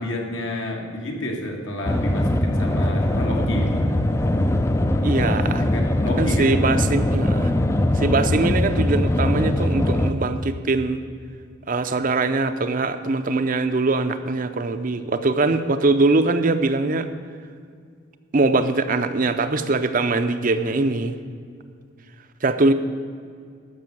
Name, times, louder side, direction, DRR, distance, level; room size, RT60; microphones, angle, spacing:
voice 1, 0.0-3.7 5.6-6.9, left 1 dB, 70° left, 0 dB, 2.0 m, -30 dB
sound 1, 1.9-10.1, left 1 dB, 15° left, 0.4 m, -21 dB
voice 2, 5.0-5.6 6.2-7.5 8.0-11.0 11.7-17.1 18.3-21.1 22.4-22.7, right 3 dB, 40° right, 9 dB, 0.6 m, -22 dB
13.0 x 6.2 x 7.7 m, 2.2 s
head